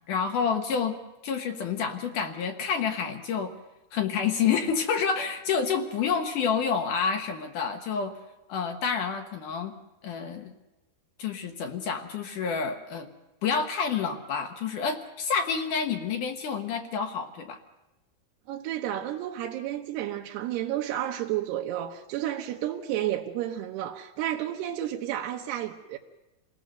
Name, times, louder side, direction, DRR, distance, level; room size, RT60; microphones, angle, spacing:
voice 1, 0.1-1.0 1.2-3.5 3.9-8.2 8.5-9.7 10.0-10.5 11.2-13.1 13.4-17.6, left 6 dB, 65° left, 2.3 m, -28 dB
voice 2, 18.5-26.0, right 12 dB, 90° right, 3.1 m, -31 dB
28.0 x 18.0 x 6.7 m
omnidirectional pair, 4.6 m